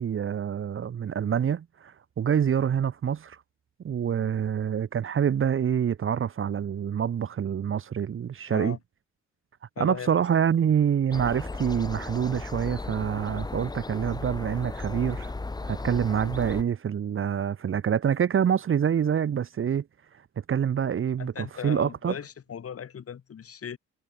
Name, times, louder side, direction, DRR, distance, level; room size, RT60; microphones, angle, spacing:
voice 1, 0.0-3.4 3.8-8.8 9.8-15.3 15.7-19.8 20.5-22.1, right 8 dB, 45° right, 1.0 m, -26 dB
voice 2, 8.5-8.8 9.8-10.1 21.2-23.8, left 8 dB, 50° left, 3.2 m, -37 dB
sound 1, 11.1-16.6, left 3 dB, 15° left, 0.9 m, -35 dB
cardioid pair, 90°, 30 cm